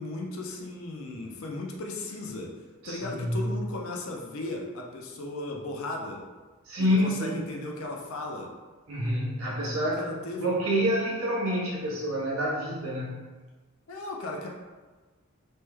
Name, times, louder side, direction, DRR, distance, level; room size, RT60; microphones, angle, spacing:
voice 1, 0.0-2.5 2.8-6.2 6.8-8.5 10.0-10.5 13.9-14.5, left 2 dB, 75° left, 0 dB, 0.5 m, -36 dB
voice 2, 2.8-3.6 6.6-7.4 8.9-13.2, equal, 75° right, -6 dB, 0.9 m, -28 dB
3.2 x 2.2 x 3.1 m, 1.3 s
head